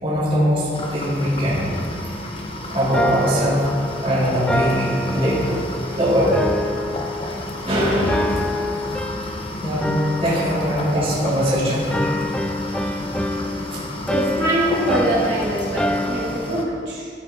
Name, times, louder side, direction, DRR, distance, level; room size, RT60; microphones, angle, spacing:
voice 1, 0.0-1.8 2.7-3.8 4.0-5.6 5.9-6.4 7.7-8.4 9.6-9.9 10.2-12.0 12.8-13.0 13.7-13.8, equal, 35° right, -9 dB, 2.9 m, -21 dB
sound 1, 0.7-16.6, left 1 dB, 30° left, 1.1 m, -32 dB
sound 2, 2.9-5.9 6.3-7.7 8.1-9.5 9.8-11.5 11.9-16.6, left 1 dB, 5° left, 0.4 m, -27 dB
voice 2, 14.1-17.1, right 1 dB, 75° right, -7 dB, 3.1 m, -23 dB
13.5 x 8.2 x 3.9 m, 2.2 s
head